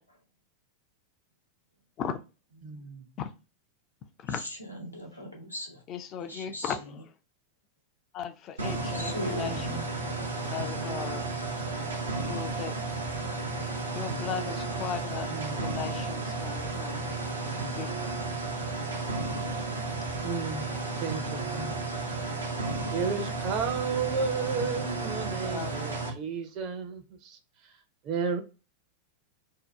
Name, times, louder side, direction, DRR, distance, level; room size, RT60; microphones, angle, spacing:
voice 1, 2.6-3.1 13.9-14.0 15.3-15.7 20.2-21.8 22.9-27.4 28.0-28.4, right 5 dB, 40° right, 0.6 m, -33 dB
voice 2, 4.6-5.8 6.2-6.7 8.9-9.8 10.2-10.3, equal, 85° left, 0.8 m, -38 dB
voice 3, 5.9-7.1 8.1-9.9 10.5-11.3 12.2-12.8 13.9-17.1 17.8-18.1 20.7-20.8 25.4-26.1, left 8 dB, 35° left, 0.4 m, -37 dB
sound 1, 8.6-26.1, right 3 dB, 75° right, 0.7 m, -33 dB
2.7 x 2.2 x 3.3 m
figure-of-eight pair, 90°, 0 cm